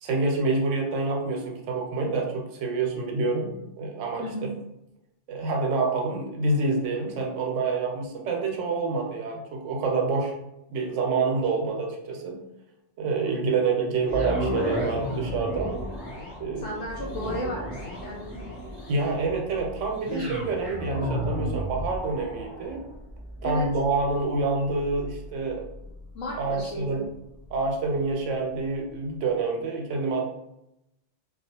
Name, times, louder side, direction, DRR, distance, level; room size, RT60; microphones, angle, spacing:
voice 1, 0.0-3.5 3.8-4.3 5.3-10.3 10.7-12.4 13.0-15.7 16.4-16.7 18.9-22.8 23.4-25.6 26.4-27.0 27.5-30.3, right 3 dB, 80° right, 1 dB, 0.9 m, -27 dB
sound 1, 14.0-28.2 28.8-28.9, equal, 30° left, 0.7 m, -34 dB
voice 2, 16.6-18.4 23.4-23.7 26.1-27.0, left 1 dB, 90° left, -6 dB, 1.0 m, -34 dB
2.4 x 2.3 x 2.7 m, 0.85 s
omnidirectional pair, 1.3 m